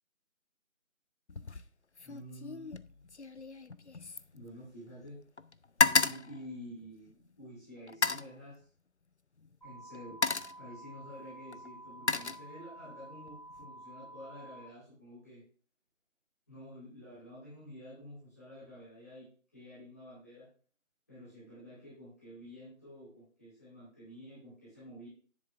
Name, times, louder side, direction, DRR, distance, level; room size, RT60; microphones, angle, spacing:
sound 1, 1.3-1.7 2.0-5.1 5.4-7.3 7.9-8.3 9.4-9.6 9.9-10.7 11.5-12.9 13.3-13.7, left 4 dB, 55° left, 0.5 m, -33 dB
voice 1, 2.0-3.0 4.3-5.2 5.8-8.6 9.6-10.3 10.6-15.4 16.5-19.2 19.5-20.5 21.1-25.1, equal, 10° left, -13 dB, 3.9 m, -50 dB
sound 2, 9.6-14.6, right 1 dB, 20° right, 3.6 m, -50 dB
10.0 x 7.7 x 3.5 m, 0.40 s
figure-of-eight pair, 180°, 40 cm